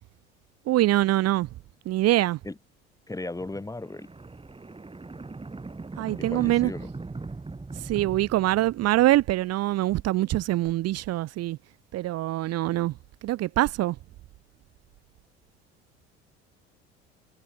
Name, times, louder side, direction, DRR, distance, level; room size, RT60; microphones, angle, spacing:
voice 1, 0.7-1.5 1.9-2.4 6.0-6.7 7.8-11.6 11.9-12.9 13.2-14.0, right 16 dB, 45° right, 1.1 m, -24 dB
voice 2, 3.1-4.1 6.2-6.9, left 2 dB, 10° left, 1.7 m, -36 dB
sound 1, 3.4-9.2, right 3 dB, 15° right, 4.9 m, -40 dB
figure-of-eight pair, 60°, 34 cm